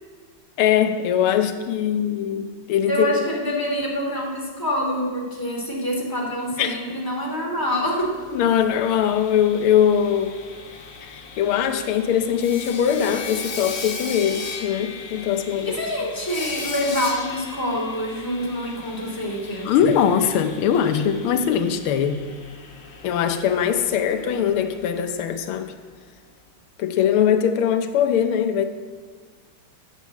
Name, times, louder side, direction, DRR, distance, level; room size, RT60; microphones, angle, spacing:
voice 1, 0.6-3.1 6.6-6.8 8.3-10.4 11.0-15.7 19.6-22.2 23.0-25.7 26.8-28.7, left 9 dB, 90° left, 8 dB, 1.6 m, -21 dB
voice 2, 2.9-8.1 15.7-19.7, equal, 10° left, -2 dB, 2.5 m, -26 dB
Sawing, 8.0-25.8, left 4 dB, 45° left, 0.9 m, -38 dB
9.4 x 9.0 x 7.5 m, 1.5 s
omnidirectional pair, 2.3 m